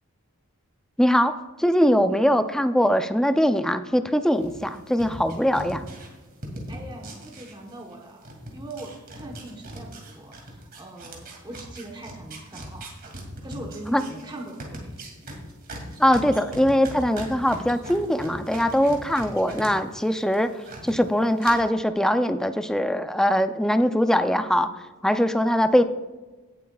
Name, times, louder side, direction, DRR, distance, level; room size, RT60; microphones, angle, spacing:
voice 1, 1.0-5.8 13.9-14.0 16.0-20.5 20.8-24.7 25.0-25.8, equal, 5° left, 9 dB, 0.4 m, -21 dB
sound 1, 4.4-8.0 8.2-19.7 20.0-20.9 21.4-21.5, right 1 dB, 45° right, 2.5 m, -39 dB
voice 2, 6.7-12.9 13.4-15.0, right 2 dB, 20° right, 1 dB, 1.1 m, -41 dB
17.5 x 8.3 x 2.4 m, 1.2 s
head